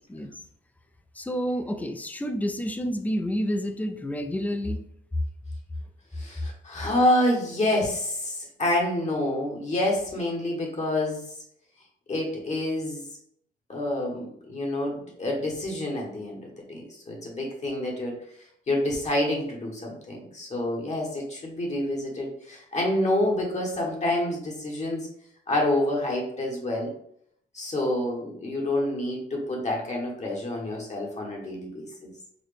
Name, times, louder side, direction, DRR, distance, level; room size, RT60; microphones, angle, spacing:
voice 1, 1.1-4.8, equal, 10° left, 7 dB, 0.4 m, -29 dB
voice 2, 6.2-11.2 12.1-13.0 13.7-16.4 16.7-18.1 18.7-25.1 25.5-26.9 27.5-32.1, left 1 dB, 35° left, -1 dB, 1.0 m, -28 dB
4.0 x 2.1 x 3.2 m, 0.67 s
cardioid pair, 90°, 20 cm